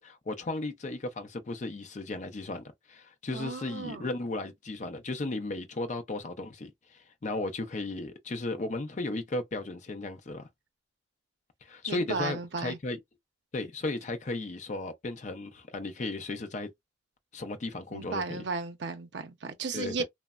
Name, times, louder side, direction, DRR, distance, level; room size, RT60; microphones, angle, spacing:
voice 1, 0.0-10.5 11.6-13.0 13.5-16.7 17.3-18.4 19.7-20.0, left 2 dB, 40° left, 0.5 m, -35 dB
voice 2, 3.3-4.1 11.9-12.8 17.9-20.0, right 4 dB, 65° right, 0.6 m, -35 dB
3.1 x 2.0 x 2.3 m
head